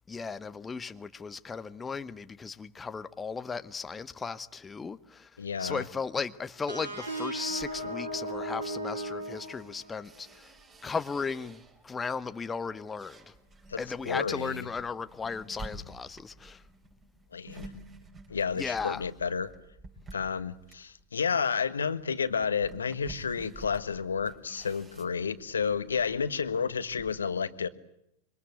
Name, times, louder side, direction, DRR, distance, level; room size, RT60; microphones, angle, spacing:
voice 1, 0.1-10.6 10.8-13.3 13.8-16.6 18.6-19.0, left 5 dB, 15° left, 1.0 m, -36 dB
voice 2, 5.4-5.8 13.7-14.6 17.3-17.7 18.3-19.5 20.1-27.7, left 6 dB, 70° left, 1.4 m, -31 dB
sound 1, 6.7-10.2, right 1 dB, 80° right, 5.9 m, -36 dB
sound 2, 7.5-12.0 12.5-27.2, right 2 dB, 20° right, 5.7 m, -51 dB
27.0 x 25.0 x 8.1 m
figure-of-eight pair, 90°, 0 cm